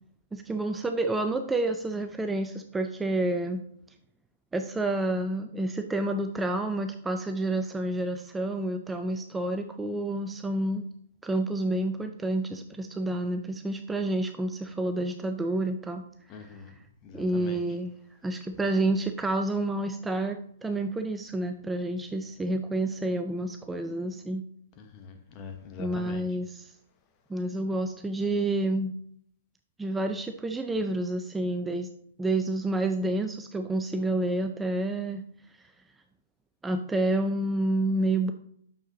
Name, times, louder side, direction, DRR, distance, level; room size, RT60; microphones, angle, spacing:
voice 1, 0.3-3.6 4.5-10.8 11.2-16.0 17.1-17.9 18.2-24.4 25.8-26.7 27.3-28.9 29.8-31.9 32.2-35.2 36.6-38.3, right 2 dB, 10° right, 6 dB, 0.4 m, -29 dB
voice 2, 16.3-16.7 17.0-17.6 24.8-26.2, left 5 dB, 30° left, 6 dB, 1.0 m, -43 dB
6.5 x 6.5 x 2.9 m, 0.66 s
figure-of-eight pair, 115°, 0 cm